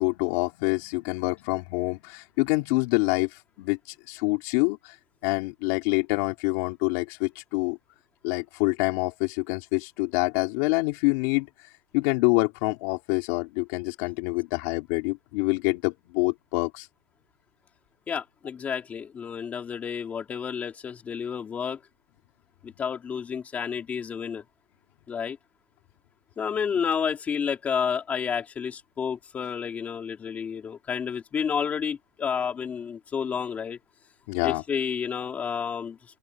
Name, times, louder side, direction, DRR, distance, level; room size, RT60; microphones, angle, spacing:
voice 1, 0.0-5.0 5.2-7.8 8.2-11.7 11.9-16.9 34.3-34.6, left 25 dB, 30° left, 3.1 m, -26 dB
voice 2, 18.1-21.8 22.6-24.4 25.1-25.4 26.4-33.8 34.4-36.0, left 7 dB, 10° left, 4.2 m, -30 dB
open air
supercardioid pair, 175°, 13 cm